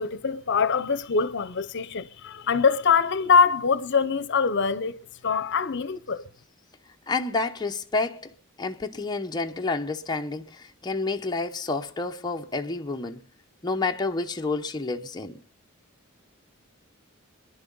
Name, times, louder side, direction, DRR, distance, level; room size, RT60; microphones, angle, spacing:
voice 1, 0.0-6.2, left 5 dB, 55° left, 0.7 m, -23 dB
voice 2, 7.1-8.3 8.6-13.3 13.6-15.4, left 3 dB, 20° left, 0.8 m, -29 dB
26.0 x 11.0 x 3.9 m
head